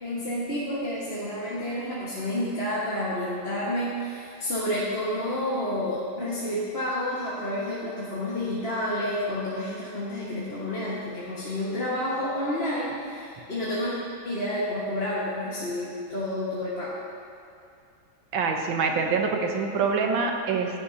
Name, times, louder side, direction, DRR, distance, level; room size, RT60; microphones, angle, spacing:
voice 1, 0.0-13.9 14.2-16.9, left 1 dB, 30° left, -9 dB, 1.7 m, -30 dB
voice 2, 18.3-20.8, right 5 dB, 75° right, 2 dB, 1.8 m, -25 dB
16.5 x 10.5 x 2.8 m, 2.5 s
omnidirectional pair, 2.2 m